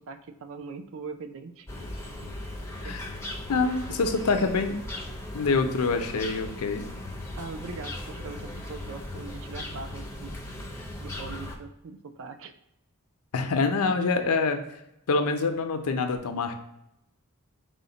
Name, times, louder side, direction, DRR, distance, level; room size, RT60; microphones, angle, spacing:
voice 1, 0.0-1.7 2.8-3.0 7.4-10.6 11.0-12.6 13.7-13.8, right 4 dB, 60° right, 9 dB, 0.4 m, -41 dB
sound 1, 1.7-11.6, left 1 dB, 10° left, 0.5 m, -38 dB
voice 2, 2.8-3.1 3.5-4.8 5.3-6.9 13.3-14.6 15.1-16.5, left 4 dB, 75° left, 7 dB, 0.5 m, -26 dB
4.9 x 2.1 x 3.8 m, 0.84 s
head